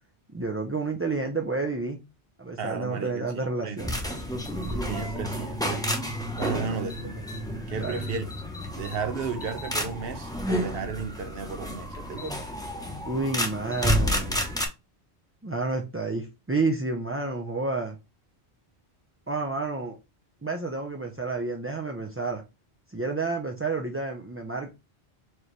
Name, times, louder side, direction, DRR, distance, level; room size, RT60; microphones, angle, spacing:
voice 1, 0.3-2.0 2.4-3.9 4.7-4.9 6.5-6.8 7.7-8.0 13.1-14.4 15.4-18.0 19.3-20.0 20.4-22.4 22.9-24.7, right 3 dB, 20° right, 0.3 m, -30 dB
voice 2, 2.6-3.3 3.6-3.8 4.9-5.8 6.4-7.2 7.7-8.3 8.8-12.3, right 6 dB, 65° right, 0.9 m, -34 dB
sound 1, 3.8-14.7, equal, 5° left, 0.8 m, -30 dB
4.7 x 2.9 x 3.2 m
omnidirectional pair, 1.1 m